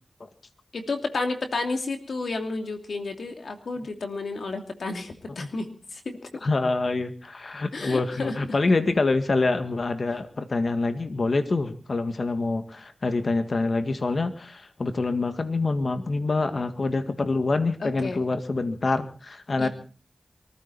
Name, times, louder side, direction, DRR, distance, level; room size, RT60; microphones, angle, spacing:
voice 1, 0.7-6.4 7.7-8.4 17.8-18.2 19.6-19.7, left 3 dB, 90° left, 5 dB, 2.8 m, -31 dB
voice 2, 6.4-19.7, left 3 dB, 65° left, 9 dB, 1.9 m, -26 dB
24.0 x 14.5 x 4.1 m, 0.36 s
cardioid pair, 40°, 0 cm